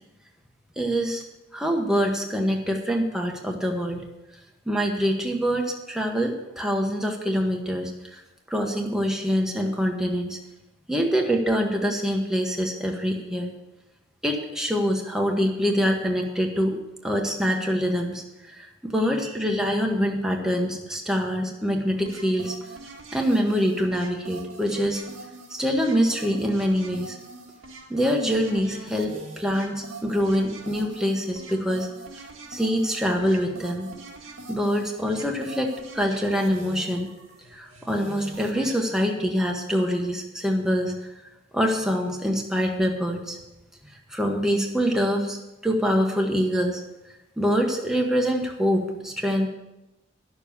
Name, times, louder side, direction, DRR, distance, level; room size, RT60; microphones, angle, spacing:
voice 1, 0.8-1.2 1.5-4.0 4.7-8.2 8.5-10.4 10.9-13.5 14.2-18.2 18.6-22.5 23.1-25.0 25.5-27.2 27.9-31.9 32.5-33.9 34.5-37.1 37.5-40.9 41.5-43.4 44.1-45.4 45.6-46.8 47.4-49.5, equal, 5° right, 1 dB, 1.1 m, -25 dB
sound 1, 22.0-38.8, right 3 dB, 80° right, 1.9 m, -43 dB
11.5 x 6.8 x 7.1 m, 0.98 s
head